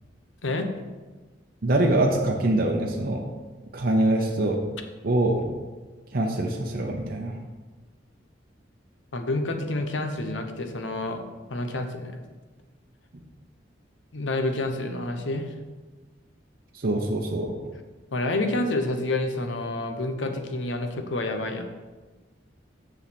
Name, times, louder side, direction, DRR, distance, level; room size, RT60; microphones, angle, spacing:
voice 1, 1.6-3.2 3.7-4.6 5.0-5.5 6.1-7.4 16.7-17.5, right 1 dB, 55° right, 1 dB, 0.7 m, -24 dB
voice 2, 9.1-11.2 11.5-12.2 14.1-15.5 18.1-21.7, left 2 dB, 85° left, 6 dB, 0.9 m, -28 dB
7.2 x 6.4 x 4.3 m, 1.3 s
head